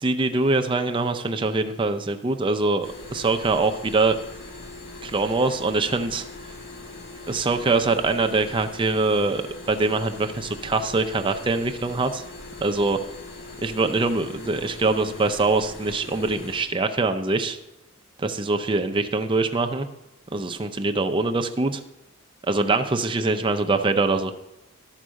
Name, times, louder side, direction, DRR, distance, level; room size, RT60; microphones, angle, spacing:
voice 1, 0.0-4.2 5.0-6.2 7.3-9.4 9.7-12.2 12.6-13.0 13.6-17.6 18.2-19.9 20.3-21.8 22.5-24.3, right 3 dB, 25° right, 6 dB, 0.5 m, -23 dB
sound 1, 2.8-16.7, left 2 dB, 65° left, 1.3 m, -41 dB
12.5 x 4.6 x 6.3 m, 0.91 s
head